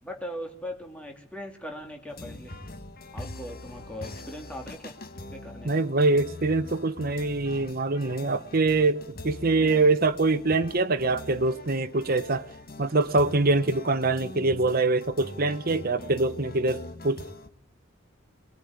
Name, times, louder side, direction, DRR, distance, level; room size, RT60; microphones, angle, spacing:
voice 1, 0.0-2.5 3.1-4.9 5.3-5.7 9.6-9.8, equal, 5° left, 3.0 m, -39 dB
sound 1, 2.1-17.5, left 2 dB, 50° left, 1.9 m, -43 dB
voice 2, 5.6-12.5 12.8-17.3, right 3 dB, 45° right, 1.0 m, -24 dB
23.0 x 20.5 x 9.7 m
head